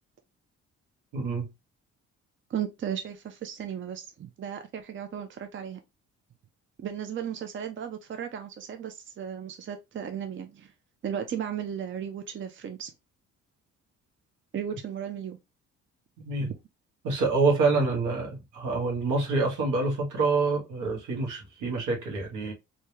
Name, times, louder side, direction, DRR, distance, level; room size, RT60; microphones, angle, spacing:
voice 1, 1.1-1.5 16.2-16.5 17.0-22.5, right 3 dB, 85° right, 1.4 m, -26 dB
voice 2, 2.5-5.8 6.8-10.7 11.0-12.9 14.5-15.4 16.4-16.5, right 9 dB, 40° right, 0.6 m, -35 dB
3.3 x 2.8 x 2.8 m
cardioid pair, 90°, 30 cm